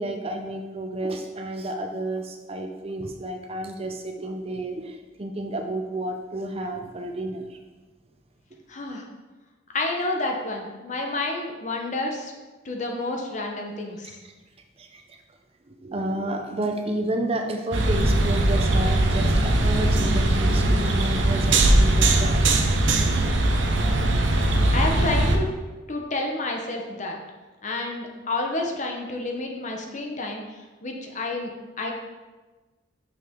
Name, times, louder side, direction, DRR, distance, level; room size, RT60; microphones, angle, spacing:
voice 1, 0.0-7.6 14.8-15.0 15.8-22.3, right 1 dB, 30° right, 4 dB, 0.6 m, -31 dB
voice 2, 8.7-9.0 9.7-12.3 12.6-14.2 24.7-25.5 25.9-27.2 27.6-31.5 31.8-31.9, left 2 dB, 40° left, 1 dB, 0.9 m, -29 dB
sound 1, 17.7-25.4, right 1 dB, 70° right, 0.7 m, -20 dB
6.5 x 5.7 x 3.7 m, 1.2 s
head